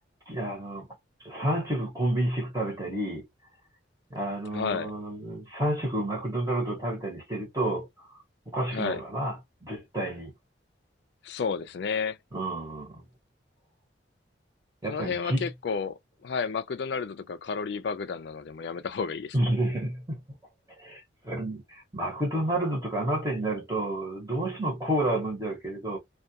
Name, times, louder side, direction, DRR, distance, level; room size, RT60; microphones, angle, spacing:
voice 1, 0.3-0.9 1.2-3.3 4.1-7.9 8.5-9.4 9.6-10.3 12.3-13.0 14.8-15.5 19.3-20.2 20.8-26.0, right 1 dB, 20° right, 0.9 m, -30 dB
voice 2, 4.5-4.9 8.7-9.0 11.2-12.2 14.9-19.4, left 5 dB, 60° left, 0.3 m, -31 dB
2.3 x 2.2 x 2.7 m
head